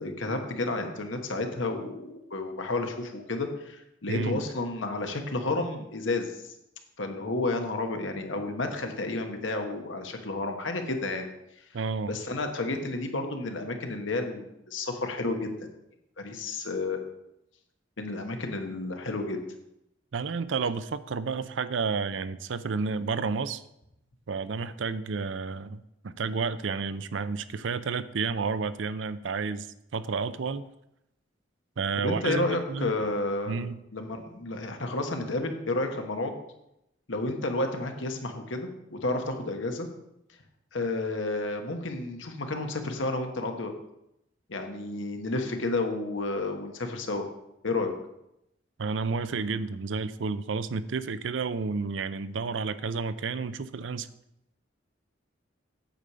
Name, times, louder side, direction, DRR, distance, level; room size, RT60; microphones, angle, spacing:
voice 1, 0.0-6.5 7.0-11.3 12.1-15.5 16.2-17.0 18.0-19.4 32.0-33.6 33.9-36.3 37.1-39.9 40.7-43.7 44.5-47.3 47.6-47.9, left 2 dB, 90° left, 5 dB, 1.3 m, -31 dB
voice 2, 4.1-4.4 11.7-12.1 20.1-23.6 24.3-29.7 29.9-30.7 31.8-32.9 33.5-33.8 48.8-54.1, right 4 dB, 80° right, 14 dB, 0.5 m, -31 dB
9.0 x 4.9 x 6.7 m, 0.82 s
head